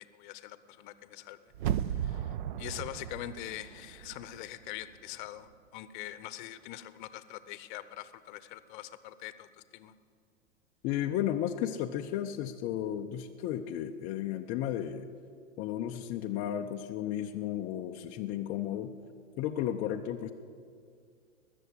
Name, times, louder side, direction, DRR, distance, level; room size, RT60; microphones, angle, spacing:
voice 1, 0.0-1.4 1.9-9.5 9.7-9.9, left 13 dB, 40° left, 14 dB, 0.8 m, -43 dB
sound 1, 1.5-4.5 4.8-4.9, right 10 dB, 40° right, 0.5 m, -35 dB
voice 2, 10.8-15.1 15.6-18.9 19.4-20.3, left 11 dB, 20° left, 3 dB, 0.4 m, -33 dB
20.0 x 7.0 x 8.4 m, 2.2 s
figure-of-eight pair, 110°, 37 cm